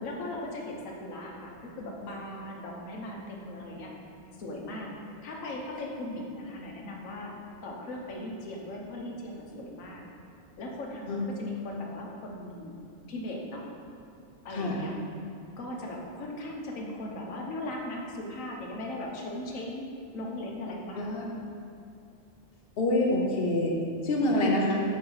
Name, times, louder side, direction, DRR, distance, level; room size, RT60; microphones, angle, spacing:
voice 1, 0.0-3.9 4.4-4.9 5.2-7.3 7.6-10.0 10.6-12.7 13.1-13.6 14.4-14.9 15.6-19.9 20.1-21.3 24.5-24.6, left 1 dB, 85° left, -1 dB, 1.3 m, -38 dB
voice 2, 14.5-14.8 21.0-21.2 22.8-23.8 24.0-24.8, left 1 dB, 50° left, -1 dB, 1.0 m, -26 dB
7.1 x 3.2 x 5.5 m, 2.6 s
omnidirectional pair, 1.4 m